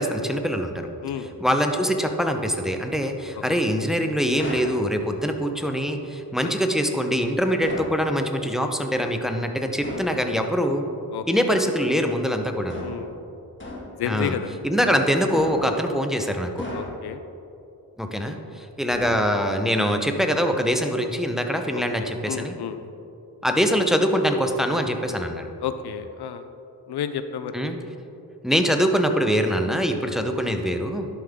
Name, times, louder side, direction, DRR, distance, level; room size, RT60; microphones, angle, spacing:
voice 1, 0.0-0.9 1.4-10.9 11.3-12.8 14.0-14.4 14.6-16.6 18.0-22.5 23.4-25.5 27.5-27.8 28.4-31.1, equal, ahead, 5 dB, 0.8 m, -23 dB
sound 1, 4.4-4.8 7.6-8.0 9.8-10.2 12.7-13.1 13.6-14.0 15.3-15.8 16.6-17.2 18.9-19.6, left 1 dB, 30° left, 1.9 m, -35 dB
voice 2, 11.1-11.5 12.8-13.1 14.0-14.5 16.7-17.2 21.7-22.8 25.6-26.5 26.9-27.7, left 8 dB, 80° left, 10 dB, 0.5 m, -31 dB
11.5 x 5.4 x 3.6 m, 2.7 s
cardioid pair, 60°, 39 cm